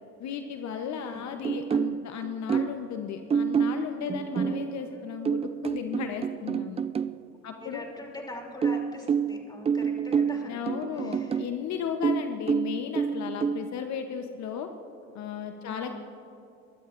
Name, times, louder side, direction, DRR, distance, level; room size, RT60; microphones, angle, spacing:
voice 1, 0.2-6.8 7.4-7.8 10.5-14.7 15.1-16.0, left 7 dB, 60° left, 6 dB, 0.9 m, -35 dB
voice 2, 0.8-1.3 4.4-5.0 7.6-10.6 10.9-11.4 15.6-16.0, left 1 dB, 15° left, 0 dB, 3.0 m, -43 dB
sound 1, 1.4-2.8 3.3-7.2 8.6-11.6 12.0-13.6, right 6 dB, 20° right, 0.3 m, -28 dB
22.0 x 13.0 x 2.5 m, 2.7 s
supercardioid pair, 80°, 31 cm